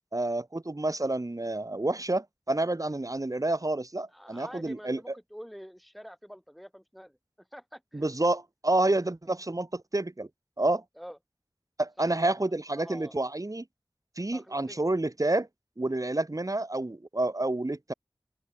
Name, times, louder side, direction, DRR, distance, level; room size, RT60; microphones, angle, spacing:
voice 1, 0.1-5.0 7.9-10.3 10.6-10.8 11.8-13.6 14.2-15.5 15.8-17.9, right 2 dB, 45° right, 3.2 m, -29 dB
voice 2, 4.1-8.0 9.0-9.1 11.0-11.2 12.0-12.4 12.7-13.2 14.3-14.8, equal, ahead, 4.6 m, -47 dB
open air
wide cardioid pair, 45°, 8 cm